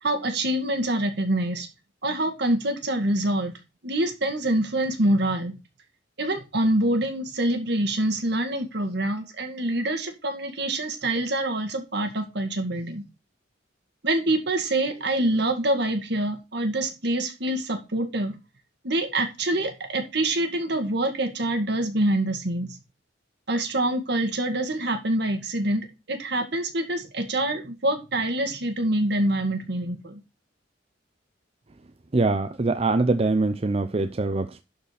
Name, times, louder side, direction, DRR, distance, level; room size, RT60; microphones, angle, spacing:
voice 1, 0.0-1.7 2.0-3.5 3.8-5.6 6.2-13.0 14.0-18.4 18.8-22.8 23.5-30.2, right 1 dB, 65° right, 2.1 m, -25 dB
voice 2, 32.1-34.6, right 3 dB, 35° right, 0.6 m, -23 dB
11.5 x 5.1 x 5.0 m
head